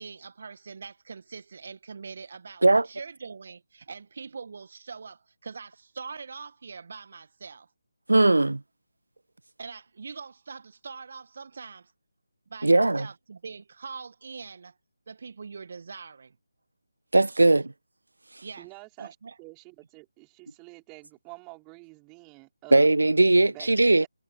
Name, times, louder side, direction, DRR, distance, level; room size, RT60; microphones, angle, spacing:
voice 1, 0.0-7.7 9.6-11.9 12.5-14.7 15.1-16.4 18.4-18.7 19.0-19.4, right 5 dB, 45° right, 1.4 m, -42 dB
voice 2, 8.1-8.6 12.6-13.1 17.1-17.7 22.7-24.1, right 2 dB, 70° right, 0.7 m, -19 dB
voice 3, 18.6-22.9 23.5-24.1, right 31 dB, 15° right, 4.5 m, -48 dB
figure-of-eight pair, 155°, 0 cm